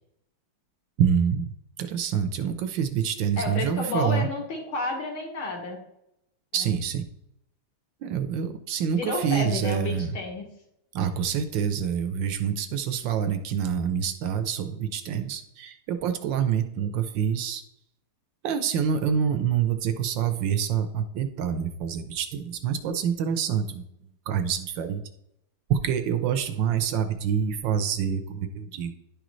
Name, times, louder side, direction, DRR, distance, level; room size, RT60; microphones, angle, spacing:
voice 1, 1.0-1.5 1.8-4.3 6.5-7.0 8.0-10.2 10.9-17.6 18.4-23.8 24.3-25.0 25.7-28.9, right 8 dB, 70° right, 8 dB, 1.2 m, -26 dB
voice 2, 3.4-5.8 6.6-6.7 8.9-10.5, left 3 dB, 70° left, -1 dB, 2.4 m, -31 dB
11.0 x 5.0 x 3.1 m, 0.79 s
omnidirectional pair, 2.4 m